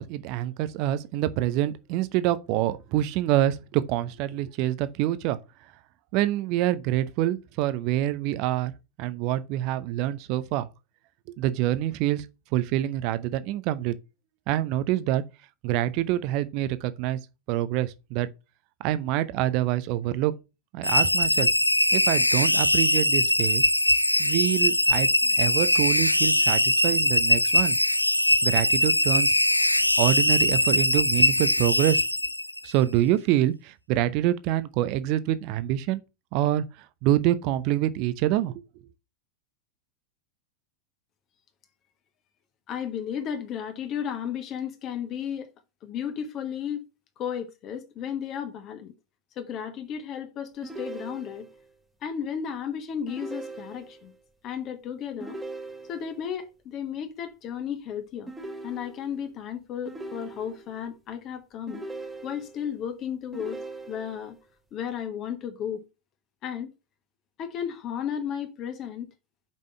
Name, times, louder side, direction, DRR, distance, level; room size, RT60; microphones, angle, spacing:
voice 1, 0.0-5.4 6.1-8.7 9.0-10.7 11.3-12.3 12.5-14.0 14.5-15.2 15.6-17.2 17.5-18.3 18.8-20.3 20.7-21.5 21.9-23.7 24.2-27.8 28.4-29.4 30.0-32.0 32.6-36.0 36.3-38.6, right 13 dB, 45° right, 0.6 m, -26 dB
sound 1, 20.8-32.7, left 1 dB, 85° left, 0.3 m, -22 dB
voice 2, 42.7-45.5 45.8-46.8 47.2-48.9 49.4-51.5 52.0-54.1 54.4-55.4 55.9-58.3 58.6-61.9 62.2-64.4 64.7-65.9 66.4-66.7 67.4-69.1, left 8 dB, 35° left, 1.2 m, -34 dB
sound 2, 50.6-51.7 53.1-54.1 55.2-56.2 58.3-59.3 59.9-60.8 61.7-62.7 63.3-64.3, right 2 dB, 5° right, 1.3 m, -40 dB
5.3 x 5.3 x 6.4 m
figure-of-eight pair, 90°, 0 cm